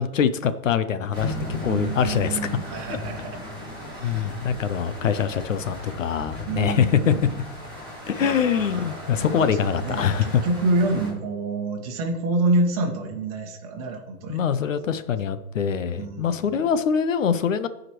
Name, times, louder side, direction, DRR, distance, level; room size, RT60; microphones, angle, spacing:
voice 1, 0.0-2.4 4.0-7.1 8.1-10.4 14.3-17.7, left 7 dB, 55° left, 12 dB, 0.6 m, -24 dB
sound 1, 1.1-11.1, left 1 dB, 5° left, 2.9 m, -37 dB
voice 2, 1.6-3.4 3.9-4.3 6.4-7.4 8.2-14.7 15.9-16.7, right 2 dB, 25° right, 1 dB, 1.3 m, -28 dB
15.0 x 5.0 x 3.0 m, 1.0 s
hypercardioid pair, 160°, 46 cm